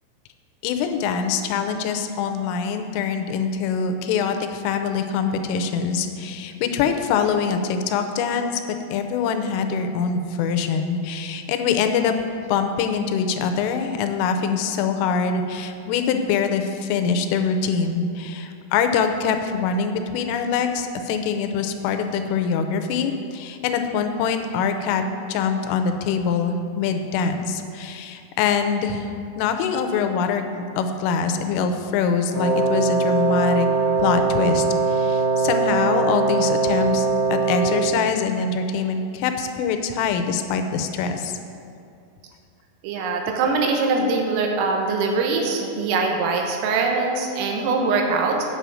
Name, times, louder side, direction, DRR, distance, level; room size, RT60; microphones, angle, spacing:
voice 1, 0.6-12.1 12.5-25.0 25.3-29.1 29.4-30.4 30.8-33.7 34.0-41.3, left 6 dB, 85° left, 7 dB, 3.3 m, -24 dB
Wind instrument woodwind instrument, 32.3-38.0, right 4 dB, 35° left, 3.0 m, -21 dB
voice 2, 42.8-48.4, right 4 dB, 85° right, 2 dB, 3.7 m, -22 dB
8.7 x 7.0 x 7.5 m, 2.5 s
omnidirectional pair, 5.7 m